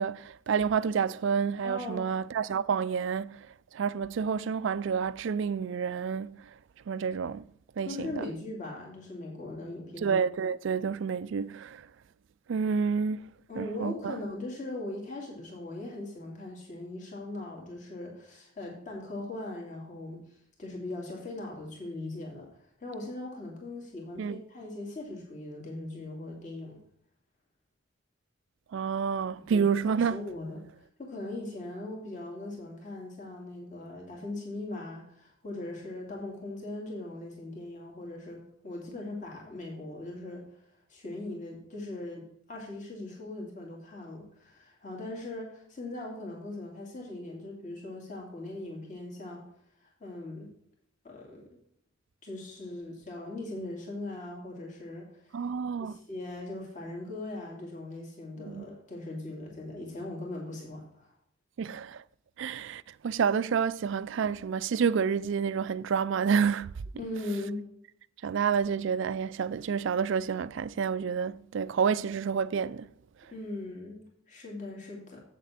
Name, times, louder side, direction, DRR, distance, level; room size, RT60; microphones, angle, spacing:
voice 1, 0.0-3.4 3.7-6.4 6.9-7.4 7.8-8.3 10.0-11.8 12.5-13.3 13.6-14.2 24.2-24.4 28.7-30.2 55.3-56.0 58.5-58.7 61.6-62.0 62.4-66.7 68.2-72.9, right 6 dB, 65° right, 0.4 m, -29 dB
voice 2, 1.6-2.1 7.8-10.2 13.5-20.2 20.6-22.5 22.8-26.8 29.5-30.6 31.0-40.4 40.9-49.4 49.8-50.5 51.0-51.5 52.2-55.3 55.8-61.1 67.0-67.6 73.3-75.2, left 2 dB, 40° left, 2.4 m, -40 dB
8.2 x 7.4 x 4.2 m
head